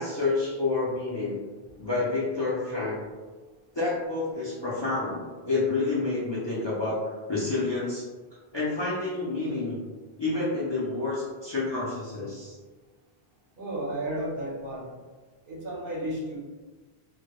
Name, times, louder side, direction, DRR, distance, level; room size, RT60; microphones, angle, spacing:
voice 1, 0.0-1.4 1.8-3.0 3.7-8.0 8.5-9.8 10.2-12.6, left 3 dB, 40° left, -8 dB, 0.4 m, -29 dB
voice 2, 13.6-14.9 15.5-16.4, right 1 dB, 60° right, -4 dB, 0.8 m, -33 dB
2.1 x 2.1 x 2.9 m, 1.3 s
omnidirectional pair, 1.0 m